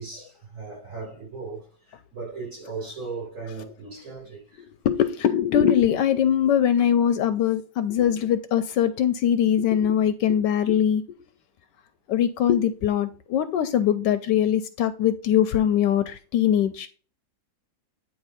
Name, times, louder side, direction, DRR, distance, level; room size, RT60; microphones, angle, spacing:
voice 1, 0.0-4.7, right 4 dB, 40° right, 4.0 m, -37 dB
voice 2, 4.6-11.0 12.1-16.9, left 9 dB, 75° left, 1.2 m, -22 dB
8.9 x 3.2 x 4.9 m
omnidirectional pair, 2.0 m